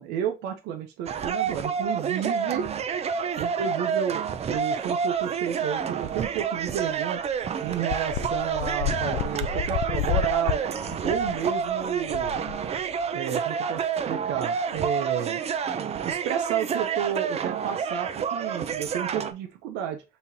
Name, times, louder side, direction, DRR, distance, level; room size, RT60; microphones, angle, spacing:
voice 1, 0.0-2.7 3.4-7.2 7.6-10.6 11.0-12.4 13.1-15.4 16.0-20.0, right 9 dB, 90° right, 3 dB, 0.7 m, -31 dB
sound 1, 1.1-19.3, right 7 dB, 40° right, 0.6 m, -29 dB
sound 2, 6.9-7.0 7.3-7.4 7.9-13.1, left 10 dB, 75° left, 0.4 m, -31 dB
5.5 x 2.8 x 2.7 m, 0.26 s
cardioid pair, 110°, 17 cm